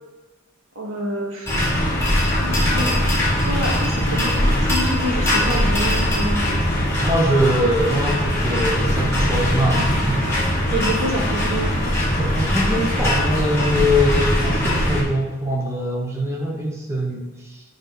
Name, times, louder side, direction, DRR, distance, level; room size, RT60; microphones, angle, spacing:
voice 1, 0.8-3.0 3.5-6.6 10.7-12.0, equal, 90° right, -2 dB, 2.1 m, -28 dB
sound 1, 1.5-15.0, left 1 dB, 15° left, 2.6 m, -21 dB
voice 2, 7.0-10.3 12.2-17.6, equal, 15° right, -1 dB, 1.1 m, -23 dB
8.0 x 5.4 x 3.9 m, 1.1 s
head